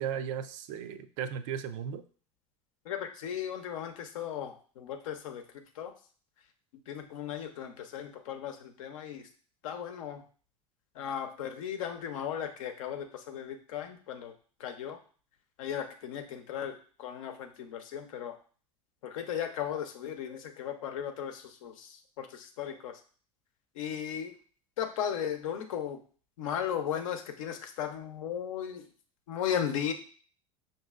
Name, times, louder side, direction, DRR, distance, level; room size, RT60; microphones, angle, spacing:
voice 1, 0.0-2.0, right 8 dB, 65° right, 10 dB, 0.4 m, -36 dB
voice 2, 2.9-5.4 5.8-5.9 6.9-9.3 9.6-10.2 11.0-14.3 14.6-15.0 15.6-18.4 19.0-22.9 23.8-24.3 24.8-26.0 26.4-28.9 29.3-29.9, left 9 dB, 75° left, 5 dB, 0.6 m, -36 dB
5.4 x 2.7 x 2.4 m, 0.42 s
hypercardioid pair, 80°, 17 cm